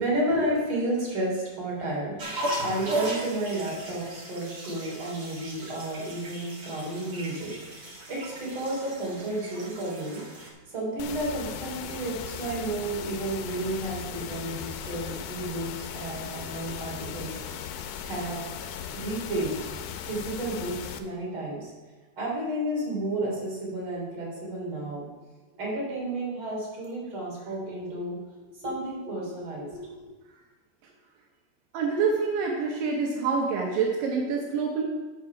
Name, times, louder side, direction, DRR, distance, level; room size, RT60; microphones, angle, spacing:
voice 1, 0.0-17.4 18.0-18.4 18.9-19.6 20.1-21.7 22.2-25.1 25.5-30.1, right 1 dB, 40° right, -5 dB, 3.6 m, -32 dB
sound 1, 2.2-10.5, right 1 dB, 60° right, 1.0 m, -36 dB
sound 2, 11.0-21.0, left 8 dB, 85° left, 2.2 m, -38 dB
voice 2, 31.7-34.9, right 5 dB, 80° right, 0 dB, 2.6 m, -26 dB
9.7 x 4.9 x 5.7 m, 1.2 s
omnidirectional pair, 3.9 m